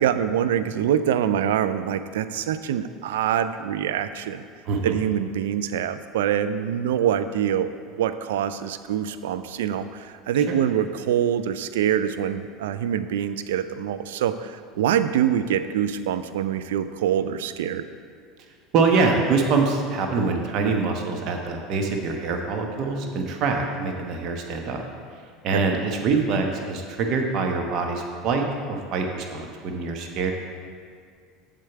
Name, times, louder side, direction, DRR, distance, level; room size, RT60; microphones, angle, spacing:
voice 1, 0.0-4.4 4.8-7.7 8.0-17.8 25.5-25.6, right 9 dB, 70° right, 11 dB, 0.4 m, -25 dB
voice 2, 18.7-24.8 25.4-30.3, right 4 dB, 50° right, 3 dB, 1.1 m, -24 dB
7.6 x 7.5 x 4.6 m, 2.1 s
figure-of-eight pair, 70°, 0 cm